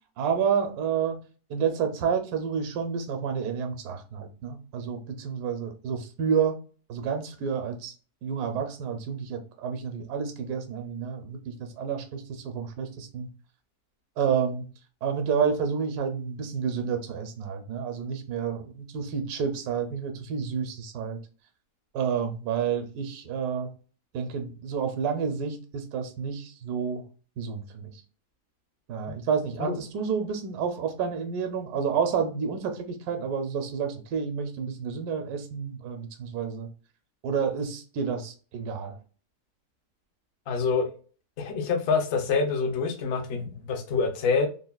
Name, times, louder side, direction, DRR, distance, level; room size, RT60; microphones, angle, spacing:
voice 1, 0.2-1.2 1.5-6.6 6.9-7.9 8.2-13.3 14.2-14.7 15.0-21.2 21.9-23.7 24.1-27.0 27.4-27.9 28.9-36.7 37.2-39.0, right 6 dB, 75° right, 6 dB, 1.1 m, -29 dB
voice 2, 40.5-40.9 41.4-44.5, left 4 dB, 60° left, 6 dB, 0.6 m, -26 dB
3.3 x 2.2 x 2.2 m, 0.38 s
omnidirectional pair, 1.7 m